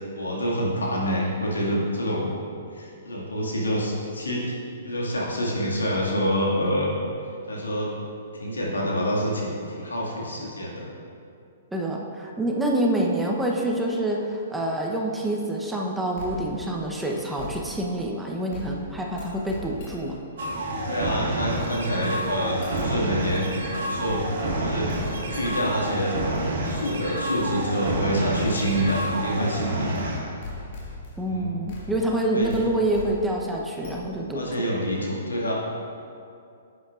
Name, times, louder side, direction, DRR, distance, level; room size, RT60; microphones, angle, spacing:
voice 1, 0.1-2.3 2.7-4.6 4.8-7.0 7.5-7.9 8.3-10.9 20.9-24.2 24.5-24.9 25.3-26.1 26.6-30.4 31.3-31.6 32.3-32.7 34.3-35.5, equal, 85° left, -4 dB, 2.0 m, -27 dB
voice 2, 11.7-20.2 31.2-34.6, right 1 dB, 5° right, -2 dB, 0.8 m, -27 dB
sound 1, 16.1-18.1 18.5-20.3 22.2-22.3 22.6-23.2 24.1-24.6 24.9-25.9 26.3-26.5 27.4-27.5 28.7-29.2 30.0-30.1 30.4-31.4 31.7-34.4, left 3 dB, 50° left, 2.1 m, -40 dB
sound 2, 20.4-30.2, right 1 dB, 65° right, 1.9 m, -29 dB
11.0 x 8.1 x 2.5 m, 2.5 s
hypercardioid pair, 120°, 0 cm